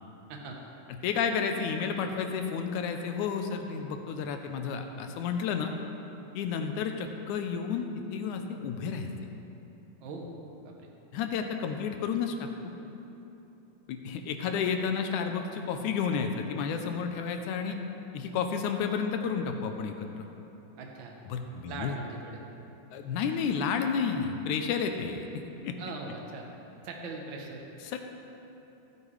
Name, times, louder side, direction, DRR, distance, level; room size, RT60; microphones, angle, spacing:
voice 1, 1.0-5.7 6.3-9.1 11.1-12.7 13.9-17.8 18.1-20.3 21.3-22.0 22.9-25.2 25.6-25.8 27.9-28.0, left 6 dB, 80° left, 5 dB, 2.0 m, -31 dB
voice 2, 20.8-21.2 21.7-22.4 25.8-26.5 26.8-27.6, right 3 dB, 85° right, 0 dB, 1.1 m, -40 dB
16.0 x 9.6 x 3.3 m, 3.0 s
omnidirectional pair, 3.7 m